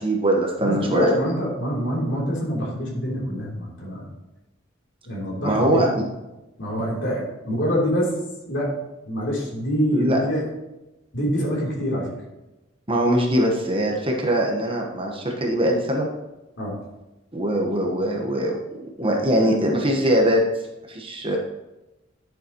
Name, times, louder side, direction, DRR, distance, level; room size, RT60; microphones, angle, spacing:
voice 1, 0.0-1.2 5.4-5.9 9.9-10.2 12.9-16.1 17.3-18.6 19.0-20.4 20.9-21.4, right 1 dB, 30° right, 1 dB, 1.1 m, -21 dB
voice 2, 0.6-4.0 5.0-5.9 6.6-8.1 8.5-8.8 9.0-10.5 11.1-12.1 16.6-16.8, equal, 65° left, -3 dB, 3.1 m, -25 dB
11.0 x 7.1 x 3.0 m, 1.0 s
head